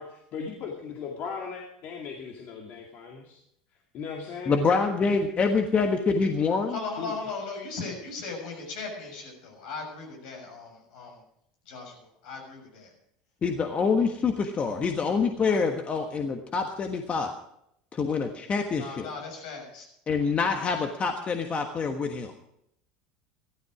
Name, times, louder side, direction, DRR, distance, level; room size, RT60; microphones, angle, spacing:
voice 1, 0.0-3.4 3.9-4.7 7.0-7.1, left 6 dB, 55° left, 1 dB, 2.3 m, -38 dB
voice 2, 4.5-6.8 13.4-17.3 17.9-19.1 20.1-22.3, left 5 dB, 35° left, 5 dB, 1.4 m, -26 dB
voice 3, 6.7-11.2 11.6-12.9 18.8-19.9, left 4 dB, 70° left, 1 dB, 6.5 m, -38 dB
15.0 x 13.0 x 5.0 m, 0.75 s
hypercardioid pair, 90°, 4 cm